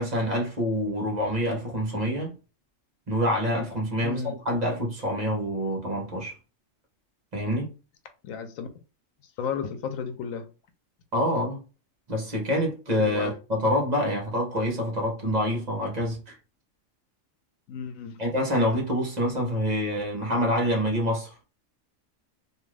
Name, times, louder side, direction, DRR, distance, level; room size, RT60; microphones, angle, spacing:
voice 1, 0.0-2.3 3.1-6.3 7.3-7.7 11.1-11.6 12.1-16.4 18.2-21.3, equal, 35° right, 0.9 m, -26 dB
voice 2, 4.0-4.4 8.2-8.7 9.4-10.5 12.9-13.4 17.7-18.2, left 6 dB, 85° left, 1.0 m, -33 dB
2.6 x 2.4 x 3.2 m
omnidirectional pair, 1.4 m